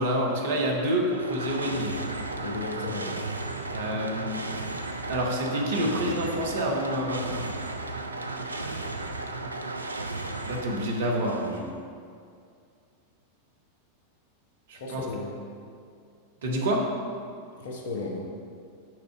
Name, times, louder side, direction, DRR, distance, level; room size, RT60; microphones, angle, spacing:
voice 1, 0.0-2.0 3.7-4.4 5.1-7.4 10.4-11.7 14.7-15.1 16.4-16.8, equal, 60° right, 0 dB, 1.0 m, -28 dB
sound 1, 0.9-11.7, right 2 dB, 80° right, 0.3 m, -35 dB
voice 2, 2.4-3.2 14.7-15.3 17.6-18.3, left 3 dB, 60° left, 1 dB, 0.9 m, -34 dB
6.2 x 3.9 x 4.9 m, 2.3 s
figure-of-eight pair, 90°, 0 cm